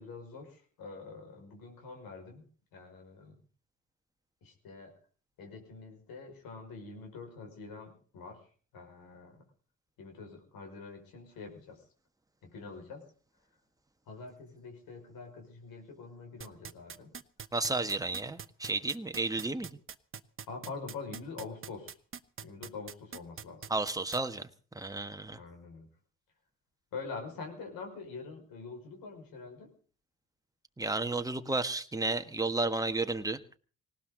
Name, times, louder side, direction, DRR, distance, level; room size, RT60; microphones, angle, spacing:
voice 1, 0.0-2.4 2.7-3.4 4.4-4.9 5.4-9.4 10.0-11.9 12.4-13.0 14.1-17.1 20.5-22.0 22.4-23.7 25.3-25.9 26.9-29.7, left 4 dB, 70° left, 3 dB, 5.6 m, -45 dB
sound 1, 16.4-24.2, right 7 dB, 35° right, 1.1 m, -43 dB
voice 2, 17.5-19.7 23.7-24.5 24.7-25.4 30.8-33.4, right 2 dB, 10° right, 8 dB, 1.5 m, -32 dB
19.0 x 17.5 x 3.9 m, 0.40 s
supercardioid pair, 60°, 36 cm